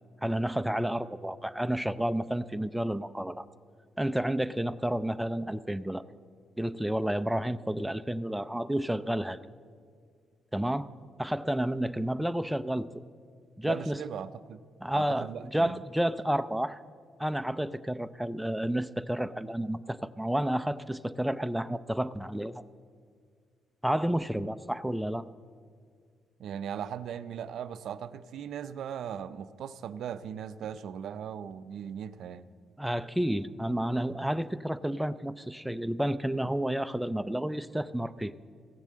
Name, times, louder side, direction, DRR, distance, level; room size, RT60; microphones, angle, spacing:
voice 1, 0.2-3.4 4.0-6.0 6.6-9.4 10.5-10.9 11.2-12.9 13.6-14.0 14.8-16.8 17.2-22.6 23.8-25.2 32.8-38.3, right 1 dB, 5° right, 12 dB, 0.4 m, -30 dB
voice 2, 13.6-14.6 14.9-15.8 26.4-32.5, right 8 dB, 70° right, 14 dB, 0.4 m, -38 dB
15.5 x 7.3 x 7.5 m, 2.1 s
cardioid pair, 90°, 0 cm